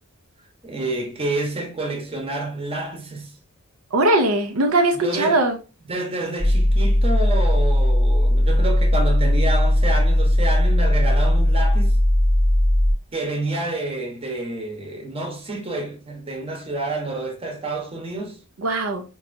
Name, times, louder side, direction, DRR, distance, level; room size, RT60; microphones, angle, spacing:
voice 1, 0.6-3.3 5.0-5.4 5.9-12.0 13.1-18.4, right 2 dB, 25° right, 0.9 m, -28 dB
voice 2, 3.9-5.6 18.6-19.0, right 2 dB, 70° right, 0.5 m, -20 dB
sound 1, 6.4-12.9, left 1 dB, 5° right, 0.4 m, -18 dB
4.6 x 2.7 x 2.5 m
head